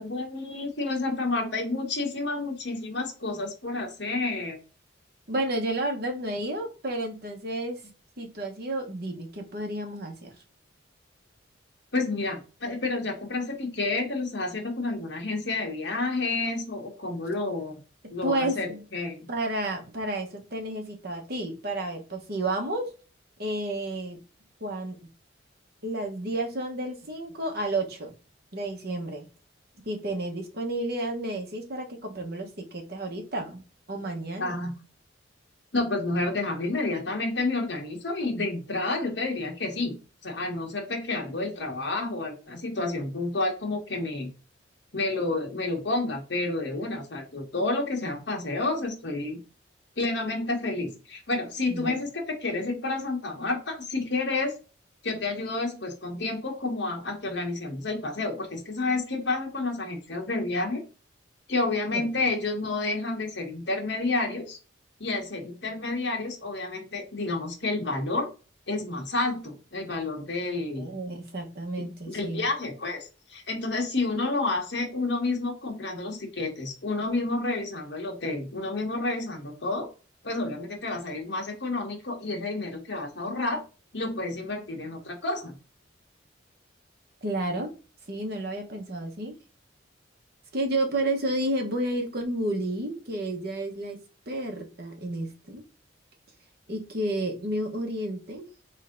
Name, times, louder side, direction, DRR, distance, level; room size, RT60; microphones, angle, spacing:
voice 1, 0.0-4.6 11.9-17.7 18.1-19.3 34.4-34.7 35.7-39.9 40.2-44.3 44.9-49.4 50.0-54.5 55.0-60.8 61.5-64.6 65.0-68.3 68.7-70.8 71.8-79.9 80.2-83.6 83.9-85.5, left 2 dB, 60° left, 2 dB, 1.4 m, -30 dB
voice 2, 5.3-7.8 8.2-10.3 18.0-18.8 19.3-22.9 23.4-24.2 24.6-25.0 25.8-28.1 28.5-29.2 29.8-33.6 33.9-34.6 51.7-52.0 61.9-62.1 70.7-72.5 87.2-87.7 88.1-89.3 90.5-95.6 96.7-98.5, right 1 dB, 55° right, 3 dB, 1.1 m, -31 dB
3.8 x 3.3 x 3.8 m, 0.33 s
head